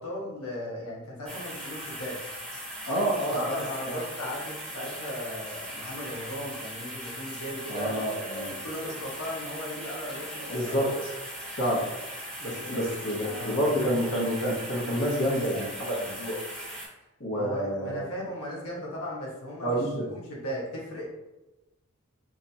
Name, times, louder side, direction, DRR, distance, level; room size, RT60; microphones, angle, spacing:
voice 1, 0.0-2.2 3.3-8.1 8.6-11.0 12.4-12.8 13.2-13.8 17.3-21.0, left 1 dB, 85° left, -4 dB, 1.1 m, -37 dB
sound 1, 1.2-16.9, equal, 5° left, 1.2 m, -39 dB
voice 2, 2.9-3.6 3.9-4.0 7.7-8.6 10.5-11.1 11.6-11.8 12.4-16.4 17.2-17.9 19.6-20.1, equal, 55° left, -6 dB, 0.9 m, -28 dB
4.3 x 2.9 x 2.7 m, 1.0 s
head